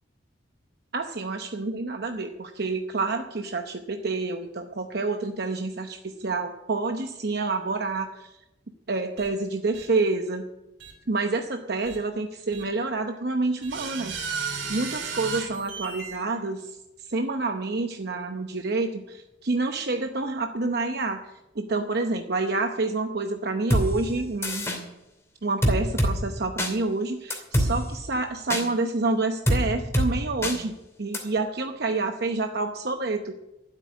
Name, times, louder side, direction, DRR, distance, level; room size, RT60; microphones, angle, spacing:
voice 1, 0.9-8.3 8.9-10.4 11.1-14.2 14.7-24.7 25.4-33.3, right 3 dB, 55° right, 5 dB, 0.8 m, -28 dB
sound 1, 9.2-9.3 9.7-9.9 10.8-10.9 11.8-12.0 12.5-12.6 13.6-16.2, right 5 dB, 75° right, 3.3 m, -34 dB
sound 2, 23.7-23.9 24.4-24.8 25.6-26.1 26.6-26.7 27.3-27.7 28.5-28.6 29.5-29.6 29.9-30.1 30.4-30.6 31.1-31.2, equal, 15° left, 2.8 m, -22 dB
13.0 x 8.4 x 9.5 m, 0.96 s
head